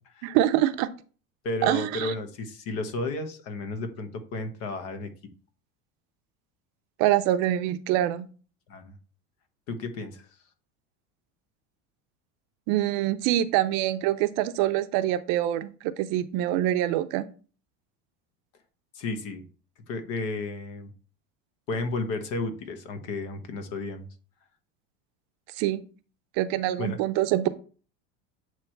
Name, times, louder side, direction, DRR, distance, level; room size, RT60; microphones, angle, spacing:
voice 1, 0.2-0.9 1.6-2.1 7.0-8.3 12.7-17.2 25.6-25.8 26.4-27.5, right 13 dB, 65° right, 11 dB, 0.7 m, -25 dB
voice 2, 1.4-5.1 8.7-9.0 9.7-10.3 18.9-19.4 19.9-20.9 21.7-24.1 26.8-27.0, left 2 dB, 55° left, 8 dB, 1.3 m, -33 dB
8.2 x 3.2 x 4.5 m, 0.38 s
cardioid pair, 140°, 29 cm